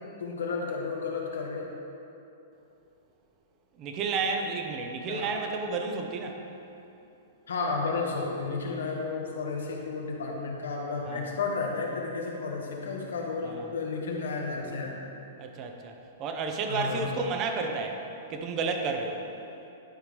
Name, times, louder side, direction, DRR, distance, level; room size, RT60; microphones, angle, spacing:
voice 1, 0.0-1.7 5.1-5.3 7.5-14.9 16.7-17.1, left 4 dB, 90° left, -1 dB, 1.4 m, -32 dB
voice 2, 3.8-6.4 11.1-11.3 13.4-13.7 15.4-18.0 18.3-19.2, right 4 dB, 35° right, 4 dB, 0.8 m, -31 dB
11.0 x 4.8 x 3.5 m, 2.8 s
hypercardioid pair, 135°, 0 cm